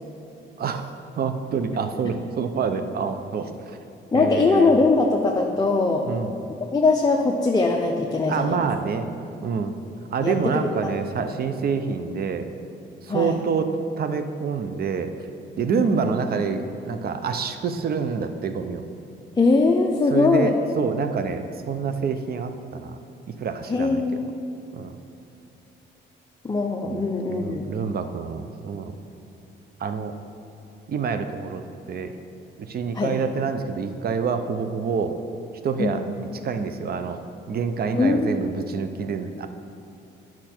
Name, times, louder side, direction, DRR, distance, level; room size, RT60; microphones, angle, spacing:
voice 1, 0.6-3.5 4.1-4.7 6.1-6.3 8.3-9.1 9.4-9.7 10.1-12.5 13.0-15.1 15.6-18.9 20.1-23.0 23.4-24.0 24.7-25.0 26.8-27.0 27.3-28.9 29.8-30.1 30.9-31.6 31.9-32.1 32.7-35.2 35.6-37.2 37.5-39.5, right 5 dB, 50° right, 8 dB, 0.7 m, -27 dB
voice 2, 4.1-6.0 6.7-8.6 10.2-10.9 13.1-13.4 15.7-16.0 19.4-20.5 23.7-24.3 26.4-27.7 32.9-33.1 35.8-36.0 37.9-38.3, left 3 dB, 20° left, 1 dB, 0.6 m, -21 dB
10.0 x 5.9 x 4.4 m, 2.7 s
cardioid pair, 90°, 20 cm